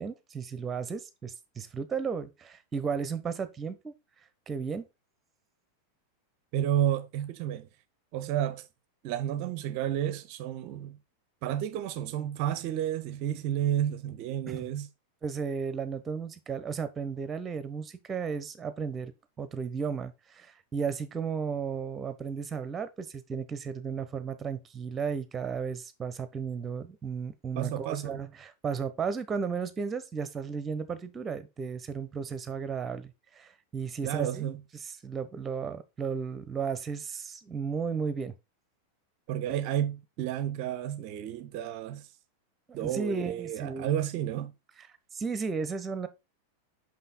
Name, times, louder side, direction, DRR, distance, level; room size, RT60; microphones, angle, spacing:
voice 1, 0.0-3.9 4.5-4.9 14.5-14.7 15.2-19.1 19.4-34.5 34.8-38.3 42.7-44.0 45.1-46.1, right 5 dB, 20° right, 1.1 m, -34 dB
voice 2, 6.5-7.7 8.1-8.7 9.0-11.0 11.4-14.9 27.5-28.2 34.0-34.6 39.3-42.1 42.7-44.5, right 11 dB, 45° right, 0.7 m, -31 dB
6.0 x 5.7 x 4.1 m
figure-of-eight pair, 90°, 0 cm